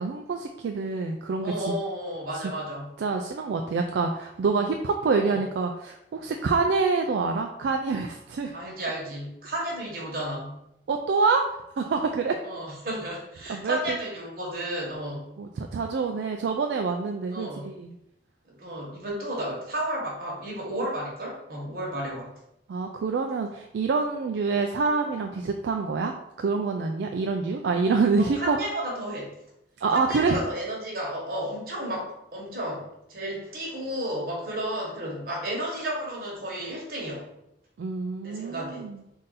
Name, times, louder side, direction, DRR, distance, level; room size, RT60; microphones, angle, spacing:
voice 1, 0.0-1.7 3.0-8.6 10.9-11.4 11.8-12.4 13.5-14.0 15.4-18.0 22.7-28.6 29.8-30.4 37.8-39.0, right 4 dB, 70° right, 4 dB, 0.3 m, -26 dB
voice 2, 1.4-2.9 5.2-5.4 8.5-10.6 12.4-15.3 17.3-17.7 18.5-22.3 28.2-29.3 29.9-32.1 32.3-37.2 38.2-38.9, right 1 dB, 50° right, -3 dB, 1.3 m, -32 dB
3.8 x 2.6 x 4.0 m, 0.81 s
head